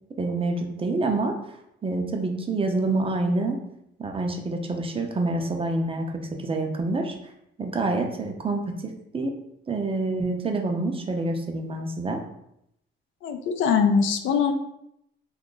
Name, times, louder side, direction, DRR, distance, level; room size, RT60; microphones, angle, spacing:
voice 1, 0.2-1.3 1.8-3.6 4.0-7.2 7.6-9.3 9.7-12.2, right 2 dB, 30° right, 3 dB, 0.5 m, -27 dB
voice 2, 13.2-14.5, left 6 dB, 75° left, 6 dB, 0.4 m, -22 dB
2.9 x 2.3 x 3.8 m, 0.79 s
cardioid pair, 90°, 20 cm